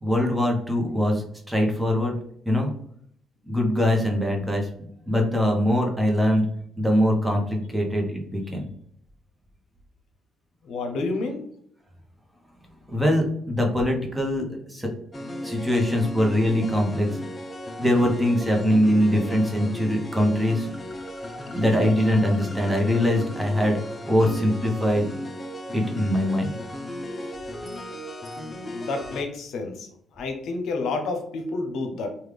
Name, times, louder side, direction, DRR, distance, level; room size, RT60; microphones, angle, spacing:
voice 1, 0.0-2.2 2.5-2.7 3.5-6.5 6.8-8.7 12.9-14.9 15.4-17.1 17.8-20.7 21.5-23.8 24.1-25.1 25.7-26.5, left 1 dB, 10° right, 1 dB, 0.8 m, -22 dB
voice 2, 10.6-11.5 27.2-27.3 28.7-32.2, left 3 dB, 75° left, 5 dB, 0.6 m, -30 dB
sound 1, 15.1-29.2, left 1 dB, 30° left, 0.5 m, -36 dB
3.1 x 2.3 x 3.3 m, 0.66 s
cardioid pair, 90°, 0 cm